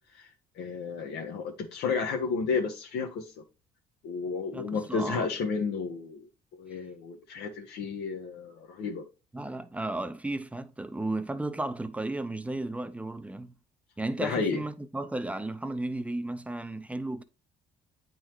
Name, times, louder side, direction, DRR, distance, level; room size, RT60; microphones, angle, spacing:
voice 1, 0.6-3.3 4.0-6.3 6.6-9.0 14.2-14.6, left 5 dB, 75° left, 1.1 m, -32 dB
voice 2, 4.5-5.3 9.3-13.5 14.0-17.2, right 2 dB, 10° right, 0.6 m, -34 dB
9.0 x 4.0 x 3.0 m
cardioid pair, 110°, 17 cm